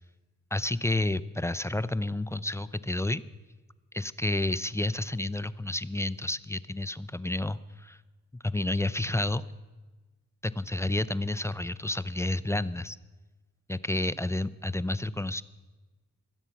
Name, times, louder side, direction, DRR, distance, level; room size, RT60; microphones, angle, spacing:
voice 1, 0.5-3.2 3.9-8.0 8.4-9.4 10.4-13.0 13.7-15.4, left 2 dB, 10° left, 15 dB, 0.4 m, -30 dB
22.5 x 8.1 x 5.8 m, 1.2 s
cardioid pair, 70°, 32 cm